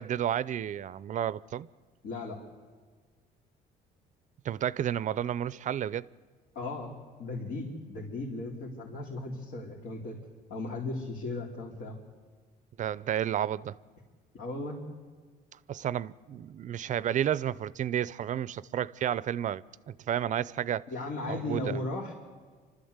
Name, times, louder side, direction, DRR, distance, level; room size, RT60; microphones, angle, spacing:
voice 1, 0.0-1.7 4.4-6.1 12.8-13.8 15.7-20.9 21.3-21.8, right 10 dB, 45° right, 0.5 m, -31 dB
voice 2, 2.0-2.4 6.5-6.9 7.2-10.2 10.5-12.0 14.3-14.8 20.9-22.1, left 2 dB, 75° left, 3.3 m, -36 dB
28.5 x 13.0 x 8.0 m
cardioid pair, 110°, 17 cm